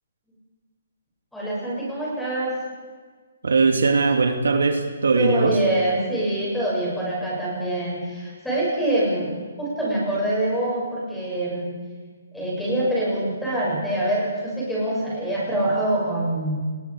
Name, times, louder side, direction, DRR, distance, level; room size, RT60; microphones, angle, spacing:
voice 1, 1.3-2.6 5.2-11.7 12.3-16.6, right 1 dB, ahead, -7 dB, 6.9 m, -25 dB
voice 2, 3.4-5.6, right 4 dB, 85° right, 5 dB, 3.0 m, -20 dB
30.0 x 21.0 x 5.0 m, 1.5 s
hypercardioid pair, 175°, 0 cm